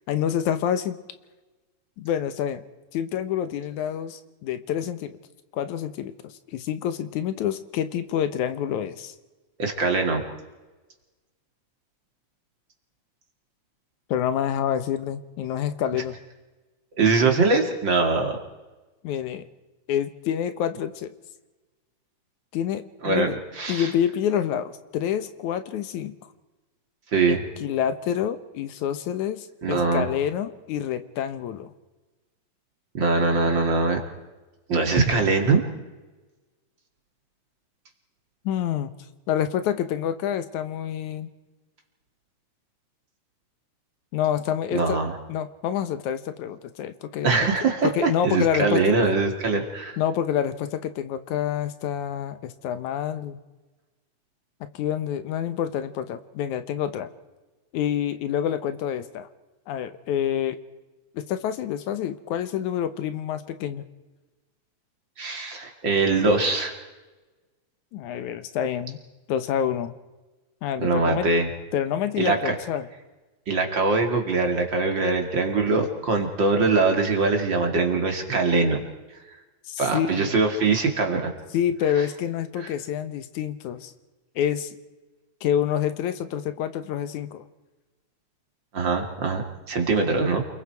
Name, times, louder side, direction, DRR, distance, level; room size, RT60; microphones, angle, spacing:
voice 1, 0.1-1.0 2.0-2.6 2.9-5.2 5.5-9.2 14.1-16.2 19.0-19.5 19.9-21.1 22.5-23.4 23.7-26.2 27.3-31.7 38.5-38.9 39.3-41.3 44.1-45.0 45.3-47.3 47.8-49.0 50.0-53.4 54.6-57.1 57.7-59.3 59.7-60.6 61.1-63.8 67.9-69.0 69.3-70.0 70.6-71.3 71.7-72.9 79.7-80.4 81.5-83.9 84.4-84.8 85.4-87.4, left 9 dB, 85° left, 11 dB, 2.5 m, -27 dB
voice 2, 9.6-10.2 17.0-18.4 23.0-23.9 27.1-27.4 29.6-30.1 32.9-34.0 34.7-35.6 44.7-45.1 47.2-50.0 65.2-66.8 70.8-71.5 72.2-72.5 73.5-78.8 79.8-81.3 82.6-82.7 88.7-90.4, right 3 dB, 40° right, 3 dB, 2.8 m, -22 dB
28.5 x 21.0 x 4.7 m, 1.2 s
omnidirectional pair, 3.3 m